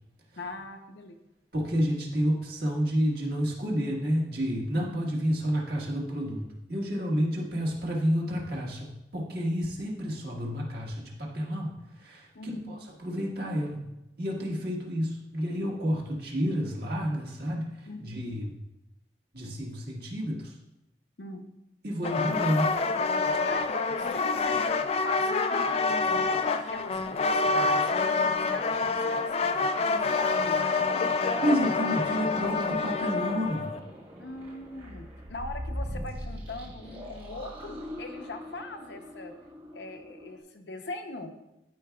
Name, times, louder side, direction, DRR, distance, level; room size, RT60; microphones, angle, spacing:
voice 1, 0.4-1.1 4.8-5.0 12.3-12.7 17.9-18.2 21.2-21.5 23.5-30.8 34.2-39.3 39.7-41.3, left 2 dB, 70° left, 5 dB, 0.7 m, -41 dB
voice 2, 1.5-6.4 6.7-13.8 14.2-18.5 19.3-20.5 21.8-22.8 31.2-33.7, equal, 55° right, -2 dB, 1.5 m, -30 dB
sound 1, 22.0-33.8, left 3 dB, 35° left, 0.3 m, -27 dB
sound 2, 31.9-40.4, equal, 30° right, 1.3 m, -41 dB
13.0 x 4.6 x 2.3 m, 0.90 s
head